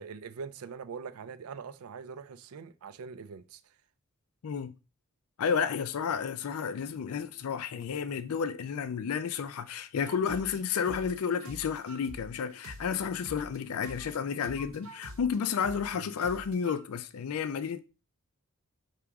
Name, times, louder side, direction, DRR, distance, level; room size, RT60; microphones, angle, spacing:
voice 1, 0.0-3.6 15.9-16.1, right 5 dB, 85° right, 0.4 m, -43 dB
voice 2, 5.4-17.8, left 6 dB, 80° left, 0.4 m, -31 dB
sound 1, 10.0-13.6 13.8-16.8, right 1 dB, 65° right, 0.8 m, -46 dB
4.8 x 2.9 x 3.4 m
head